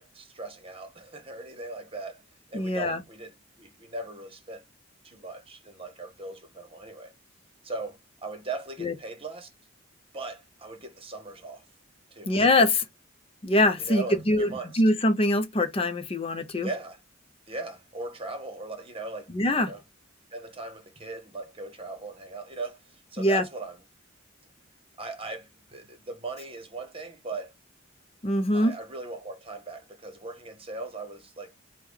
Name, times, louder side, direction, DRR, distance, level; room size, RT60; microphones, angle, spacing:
voice 1, 0.0-2.2 2.5-4.6 5.0-7.1 7.6-9.5 10.1-11.7 12.1-12.3 13.8-14.8 16.6-17.0 17.5-19.3 19.6-19.8 20.3-23.8 25.0-27.5 28.5-31.5, right 3 dB, 30° right, 1.0 m, -39 dB
voice 2, 2.5-3.0 8.8-8.9 12.3-12.8 13.4-14.5 14.7-16.7 19.3-19.7 23.2-23.4 28.2-28.7, left 1 dB, 30° left, 0.6 m, -23 dB
4.9 x 2.3 x 3.5 m
head